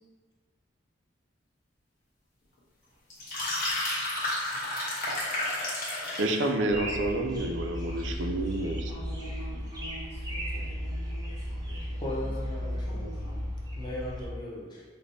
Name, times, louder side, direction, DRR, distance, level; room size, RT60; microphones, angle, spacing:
sound 1, 3.1-6.4, left 1 dB, 45° left, 1.0 m, -31 dB
voice 1, 6.2-8.9, right 2 dB, 85° right, 3 dB, 0.4 m, -29 dB
sound 2, 6.7-14.3, equal, 20° right, 0.5 m, -35 dB
voice 2, 8.9-12.3 12.6-13.5, right 1 dB, 65° left, -7 dB, 1.1 m, -47 dB
voice 3, 12.0-13.2 13.8-14.8, left 1 dB, 25° left, -4 dB, 0.6 m, -37 dB
5.0 x 2.1 x 2.6 m, 1.4 s
head